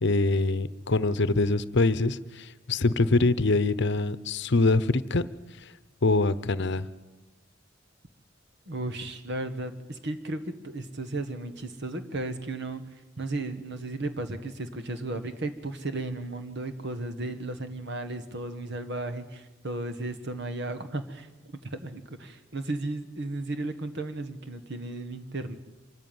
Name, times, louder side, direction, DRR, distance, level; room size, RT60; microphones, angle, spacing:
voice 1, 0.0-5.3 5.6-5.7 6.0-6.9, left 3 dB, 60° left, 15 dB, 0.9 m, -24 dB
voice 2, 8.7-25.6, right 2 dB, 60° right, 9 dB, 1.8 m, -35 dB
25.5 x 14.5 x 9.5 m, 1.2 s
head